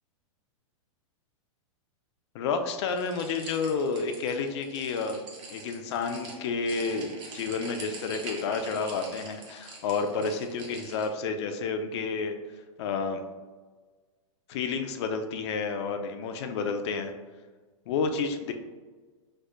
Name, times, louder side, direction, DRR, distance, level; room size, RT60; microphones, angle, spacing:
voice 1, 2.3-5.2 5.5-12.4 12.8-13.2 14.5-17.1 17.9-18.5, left 4 dB, 55° left, 6 dB, 0.4 m, -30 dB
sound 1, 2.9-11.1, right 2 dB, 25° right, 0.7 m, -44 dB
4.4 x 2.3 x 2.4 m, 1.4 s
hypercardioid pair, 135°, 18 cm